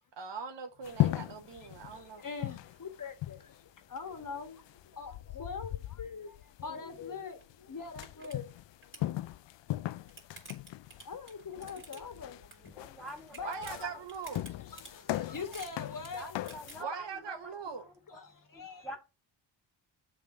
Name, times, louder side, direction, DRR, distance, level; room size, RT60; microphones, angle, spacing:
voice 1, 0.2-2.2 13.4-14.4 16.8-17.8, right 5 dB, 65° right, 1.3 m, -41 dB
sound 1, 0.8-16.8, left 15 dB, 65° left, 0.5 m, -38 dB
voice 2, 1.9-8.5 9.0-9.2 10.0-10.1 11.0-12.8 13.4-13.7 14.7-16.3 18.2-18.9, left 5 dB, 40° left, 1.5 m, -43 dB
sound 2, 7.4-7.5 7.8-8.4 8.6-9.1 9.7-12.3 12.5-12.9 13.2-16.7, right 2 dB, 25° right, 2.9 m, -51 dB
voice 3, 12.6-14.0 16.1-18.2 18.5-19.0, equal, ahead, 2.7 m, -46 dB
7.2 x 3.7 x 5.1 m
cardioid pair, 75°, 47 cm